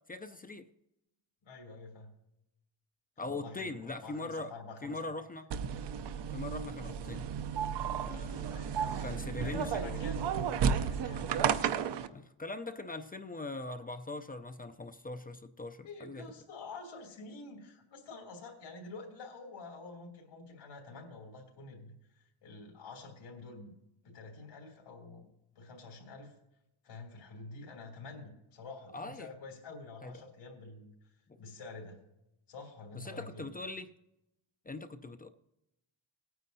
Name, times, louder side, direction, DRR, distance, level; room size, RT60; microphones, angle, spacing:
voice 1, 0.1-0.7 3.2-4.5 4.8-5.5 6.3-7.3 8.0-8.5 9.0-10.0 12.1-16.2 28.9-29.3 30.0-30.2 32.9-33.9 34.7-35.3, left 2 dB, 20° left, 0.4 m, -41 dB
voice 2, 1.4-2.1 3.2-5.0 8.3-11.4 15.8-23.7 24.0-25.3 25.5-26.3 26.8-32.0 32.5-33.5, left 3 dB, 85° left, 2.9 m, -48 dB
sound 1, 5.5-12.1, right 7 dB, 60° right, 0.7 m, -33 dB
17.5 x 9.3 x 2.7 m
cardioid pair, 120°, 47 cm